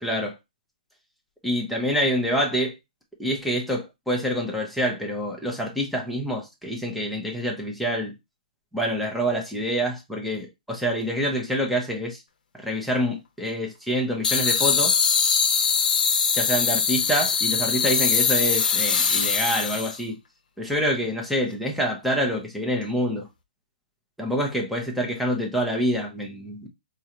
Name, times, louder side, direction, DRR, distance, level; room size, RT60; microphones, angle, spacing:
voice 1, 0.0-0.3 1.4-2.7 3.2-8.1 8.7-12.2 12.6-15.0 16.3-20.2 20.6-23.3 24.2-26.7, equal, ahead, 0.9 m, -26 dB
sound 1, 14.2-20.0, left 5 dB, 65° left, 0.7 m, -22 dB
4.7 x 2.4 x 2.9 m
hypercardioid pair, 145°, 5 cm